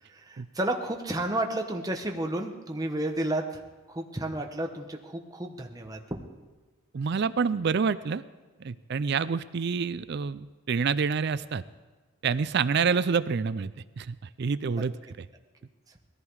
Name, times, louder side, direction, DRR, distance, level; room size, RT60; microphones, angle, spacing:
voice 1, 0.1-3.6 3.9-6.2 9.0-9.2 14.6-14.8, right 1 dB, 15° right, 3 dB, 1.1 m, -32 dB
voice 2, 6.9-8.2 8.6-11.6 12.2-15.3, right 5 dB, 50° right, 16 dB, 0.4 m, -28 dB
19.5 x 14.5 x 4.7 m, 1.3 s
head